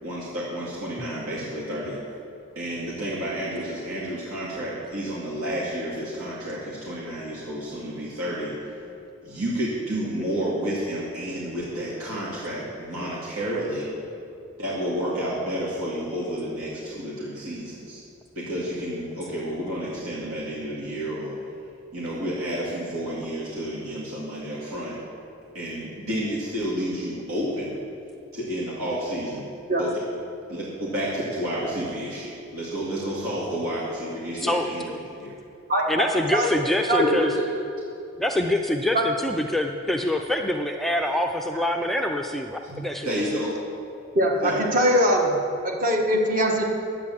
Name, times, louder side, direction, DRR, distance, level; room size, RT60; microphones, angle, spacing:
voice 1, 0.0-2.0 2.6-8.5 9.2-13.9 14.6-18.0 18.4-21.4 21.9-25.0 25.5-27.8 28.3-29.5 29.8-29.9 30.5-34.9 35.2-35.3 36.8-37.4 43.0-43.6 44.4-44.6, equal, 85° right, -7 dB, 2.2 m, -30 dB
voice 2, 34.4-35.0 35.9-37.3 38.2-43.2, left 1 dB, ahead, 3 dB, 0.4 m, -26 dB
voice 3, 35.7-36.0 36.3-36.5 36.9-37.1 38.9-39.1 42.7-42.8 44.2-45.3 45.6-46.6, equal, 40° right, 0 dB, 1.5 m, -22 dB
10.5 x 8.6 x 7.4 m, 2.6 s
head